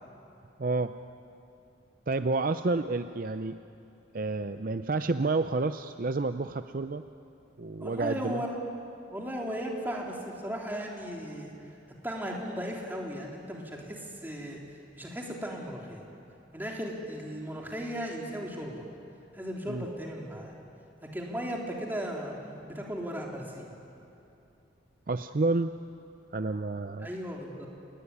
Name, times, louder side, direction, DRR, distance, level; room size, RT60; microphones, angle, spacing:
voice 1, 0.6-1.0 2.1-3.6 4.1-7.0 7.6-8.4 19.7-19.9 25.1-25.7 26.3-27.1, right 3 dB, 45° right, 10 dB, 0.6 m, -29 dB
voice 2, 7.8-8.6 9.1-11.5 12.0-14.6 14.9-16.0 16.5-18.8 19.3-20.5 21.0-23.7 27.0-27.7, equal, 10° right, -1 dB, 3.4 m, -36 dB
28.5 x 19.5 x 9.9 m, 2.7 s
head